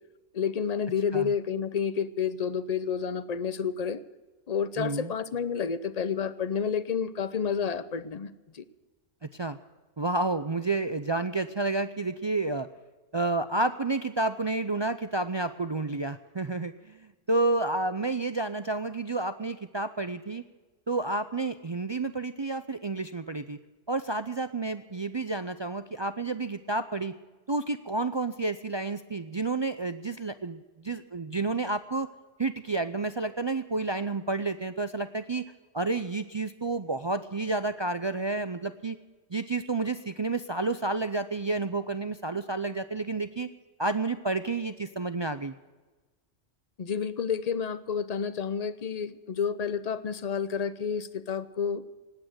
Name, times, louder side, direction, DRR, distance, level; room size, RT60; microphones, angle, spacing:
voice 1, 0.3-4.0 4.5-8.6 46.8-51.8, left 6 dB, 40° left, 14 dB, 0.7 m, -30 dB
voice 2, 4.8-5.1 9.2-9.6 10.0-12.7 13.1-20.4 20.9-23.6 23.9-27.1 27.5-32.1 32.4-35.5 35.7-39.0 39.3-43.5 43.8-45.5, right 3 dB, 45° right, 11 dB, 0.3 m, -30 dB
19.0 x 8.8 x 7.8 m, 1.2 s
omnidirectional pair, 1.3 m